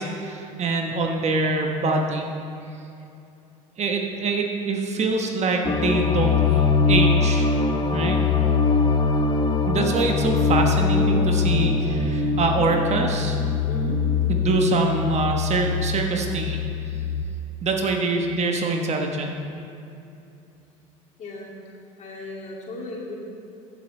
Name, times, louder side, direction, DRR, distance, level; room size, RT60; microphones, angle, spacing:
voice 1, 0.0-2.3 3.8-7.5 7.9-8.2 9.7-13.4 14.3-16.6 17.6-19.3, right 3 dB, 40° right, 2 dB, 1.2 m, -24 dB
sound 1, 5.6-17.2, left 4 dB, 25° left, 0.7 m, -22 dB
voice 2, 13.6-14.2 21.2-21.5 22.0-23.1, left 2 dB, 45° left, -3 dB, 2.5 m, -35 dB
14.5 x 7.5 x 3.3 m, 2.7 s
hypercardioid pair, 85°, 17 cm